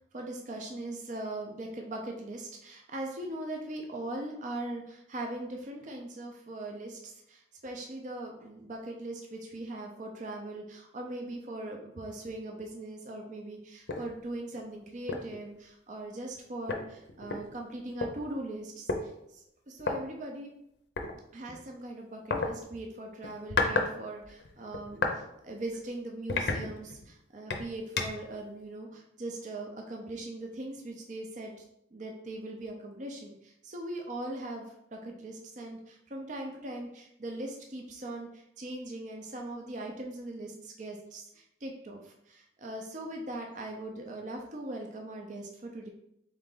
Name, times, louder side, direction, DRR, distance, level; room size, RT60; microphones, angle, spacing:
voice 1, 0.1-18.9 19.3-20.5 21.3-31.5 31.9-45.9, right 1 dB, 40° right, 1 dB, 0.5 m, -40 dB
sound 1, 13.9-14.1 14.5-14.7 15.1-15.4 16.3-16.4 16.7-18.1 18.9-19.0 19.8-20.0 21.0-21.1 22.3-22.5 23.2-23.9 24.2-25.2 25.7-25.8 26.3-27.1 27.5-28.3, left 3 dB, 60° left, 0.6 m, -31 dB
3.7 x 3.2 x 3.8 m, 0.77 s
head